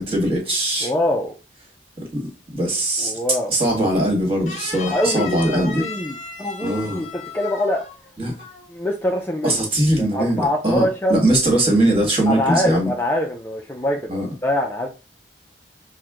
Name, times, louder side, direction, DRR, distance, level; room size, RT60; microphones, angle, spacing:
voice 1, 0.0-0.9 2.0-3.1 3.5-5.8 6.6-7.0 8.2-8.3 9.4-12.9 14.1-14.3, right 1 dB, 30° right, 1.6 m, -21 dB
voice 2, 0.8-1.3 3.0-3.6 4.9-7.9 8.7-9.6 10.0-11.2 12.3-14.9, left 1 dB, 10° left, 0.4 m, -24 dB
sound 1, 4.5-8.1 8.4-8.7, left 5 dB, 40° left, 0.9 m, -35 dB
6.1 x 2.2 x 3.6 m
head